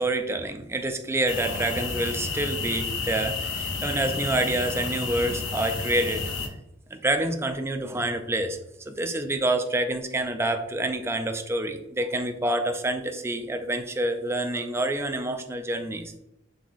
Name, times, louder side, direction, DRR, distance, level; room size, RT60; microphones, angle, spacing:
voice 1, 0.0-6.2 6.9-8.6 8.9-16.1, right 1 dB, 15° right, 6 dB, 0.4 m, -27 dB
sound 1, 1.3-6.5, left 4 dB, 80° left, 0.7 m, -31 dB
5.4 x 4.0 x 2.5 m, 0.84 s
head